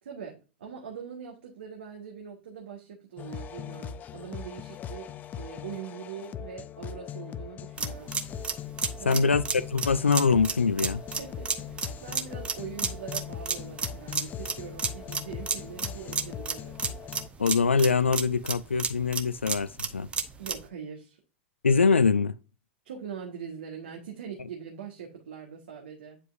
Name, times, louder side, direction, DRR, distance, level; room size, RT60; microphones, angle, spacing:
voice 1, 0.0-8.1 9.0-9.3 11.2-16.7 20.4-21.2 22.8-26.2, right 7 dB, 65° right, 1.5 m, -42 dB
sound 1, 3.2-17.3, left 8 dB, 25° left, 0.5 m, -40 dB
sound 2, 7.8-20.7, right 5 dB, 15° right, 0.8 m, -32 dB
voice 2, 9.1-9.4 9.7-11.0 17.4-20.1 21.6-22.3, left 5 dB, 80° left, 0.4 m, -23 dB
9.1 x 4.9 x 2.6 m
figure-of-eight pair, 95°, 6 cm